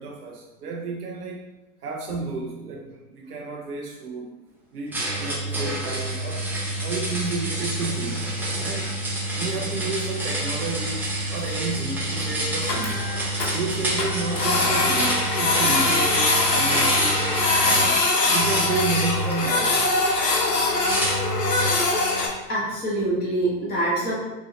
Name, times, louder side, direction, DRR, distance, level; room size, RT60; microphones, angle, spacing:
voice 1, 0.0-1.4 1.8-4.3 4.7-6.5 6.8-8.9 9.3-11.0 11.3-13.0 13.5-17.3 17.6-18.0 18.3-19.8, right 3 dB, 75° right, 0 dB, 0.7 m, -31 dB
sound 1, 4.9-17.9 18.2-19.7 20.8-21.8, right 1 dB, 5° right, 0.7 m, -28 dB
Printer, 10.7-10.8 11.0-11.1 11.4-11.5 11.8-11.9 12.2-12.3 12.5-13.5 14.0-22.3, left 2 dB, 85° left, 0.8 m, -22 dB
voice 2, 22.5-24.2, right 1 dB, 20° left, -6 dB, 1.5 m, -25 dB
4.1 x 2.7 x 3.0 m, 1.1 s
figure-of-eight pair, 95°, 47 cm